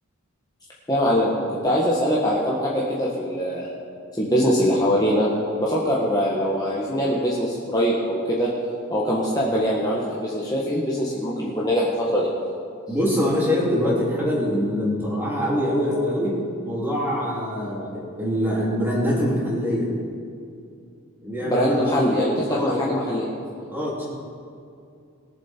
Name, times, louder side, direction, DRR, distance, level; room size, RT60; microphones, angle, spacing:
voice 1, 0.9-3.7 4.1-5.3 5.6-8.5 8.9-12.3 21.4-23.3, equal, 15° left, -6 dB, 1.4 m, -22 dB
voice 2, 12.9-16.4 16.6-19.9 21.2-22.8 23.7-24.1, equal, 10° right, -6 dB, 3.2 m, -24 dB
21.0 x 7.4 x 4.5 m, 2.4 s
head